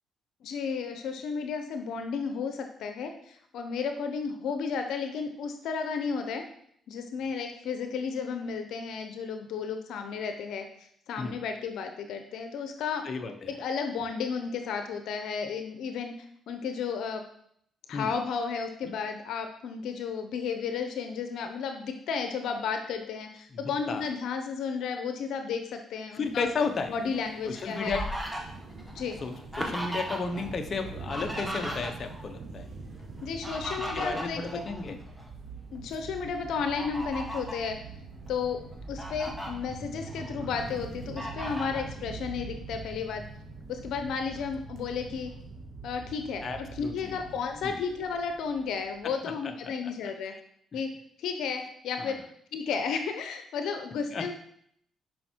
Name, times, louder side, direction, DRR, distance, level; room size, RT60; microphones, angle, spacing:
voice 1, 0.4-6.4 6.9-10.7 11.1-13.1 13.5-16.1 16.5-17.2 17.9-26.5 26.9-28.0 28.9-29.2 33.2-34.6 34.9-35.0 35.7-37.8 38.3-38.6 38.9-43.2 43.7-45.3 45.8-50.3 50.7-50.9 51.2-52.2 52.5-54.3, left 5 dB, 80° left, 6 dB, 0.9 m, -33 dB
voice 2, 13.0-13.5 17.9-18.1 23.5-23.6 23.9-24.0 26.1-26.9 27.4-28.0 29.2-32.7 33.9-35.0 46.4-47.2 47.6-47.8 49.2-49.3 52.0-52.2 54.1-54.3, left 4 dB, 45° left, 5 dB, 1.1 m, -33 dB
sound 1, 26.2-34.2, right 3 dB, 75° right, 4.2 m, -46 dB
Fowl, 27.1-30.5 30.7-32.3 33.2-35.3 35.8-35.9 36.6-37.7 38.3-38.4 38.7-39.5 40.0-40.7 41.2-41.9, equal, 5° right, 2.0 m, -37 dB
sound 2, 30.2-49.2, right 4 dB, 60° right, 2.5 m, -44 dB
11.0 x 5.6 x 4.6 m, 0.69 s
cardioid pair, 90°, 0 cm